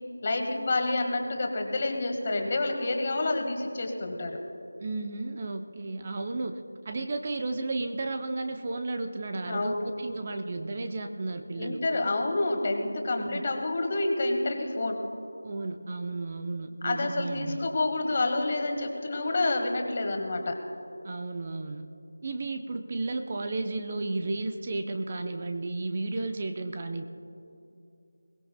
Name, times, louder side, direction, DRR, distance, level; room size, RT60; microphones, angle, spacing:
voice 1, 0.2-4.4 9.5-9.9 11.6-15.0 16.8-20.6, left 2 dB, 35° left, 3 dB, 1.7 m, -28 dB
voice 2, 4.8-11.8 13.2-13.4 15.4-17.6 21.0-21.8 22.2-27.1, right 2 dB, 35° right, 6 dB, 0.7 m, -33 dB
22.0 x 17.5 x 2.3 m, 2.9 s
figure-of-eight pair, 170°, 0 cm